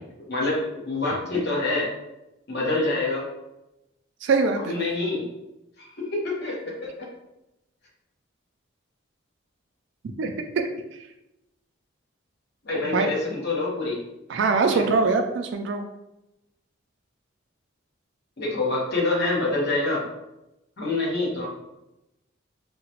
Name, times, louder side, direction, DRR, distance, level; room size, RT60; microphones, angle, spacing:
voice 1, 0.3-1.9 2.5-3.3 4.6-5.3 5.8-7.1 12.6-14.0 14.6-14.8 18.4-20.0 20.8-21.5, left 2 dB, 50° left, -4 dB, 0.9 m, -26 dB
voice 2, 4.2-4.9 10.2-10.3 12.9-13.1 14.3-15.8, right 4 dB, 60° right, 3 dB, 0.3 m, -22 dB
3.8 x 2.1 x 2.9 m, 0.93 s
head